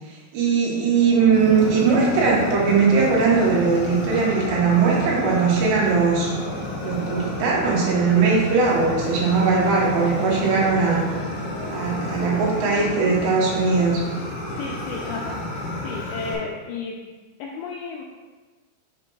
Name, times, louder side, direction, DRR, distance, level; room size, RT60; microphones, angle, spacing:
voice 1, 0.3-6.3 6.8-11.0 11.7-14.0, right 5 dB, 80° right, -4 dB, 3.4 m, -20 dB
sound 1, 0.9-14.0, right 1 dB, 45° right, 2.2 m, -39 dB
Fire, 1.3-16.4, left 2 dB, 65° left, 3.0 m, -31 dB
voice 2, 14.6-15.4 15.8-17.0 17.4-18.0, left 4 dB, 85° left, -2 dB, 2.3 m, -32 dB
7.5 x 5.7 x 2.3 m, 1.3 s
omnidirectional pair, 5.1 m